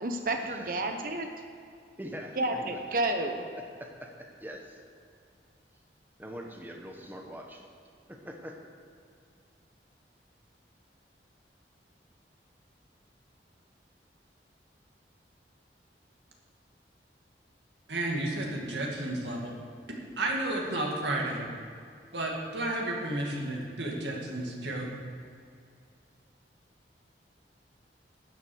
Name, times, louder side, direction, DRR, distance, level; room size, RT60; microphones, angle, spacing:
voice 1, 0.0-1.3 2.4-3.5, right 2 dB, 50° right, 4 dB, 0.9 m, -30 dB
voice 2, 2.0-2.8 3.8-4.8 6.2-7.6 8.1-8.6, equal, 10° right, 1 dB, 1.1 m, -43 dB
voice 3, 17.9-19.6 20.2-21.5 22.1-24.9, right 1 dB, 85° right, -1 dB, 2.1 m, -32 dB
12.0 x 7.4 x 6.3 m, 2.3 s
head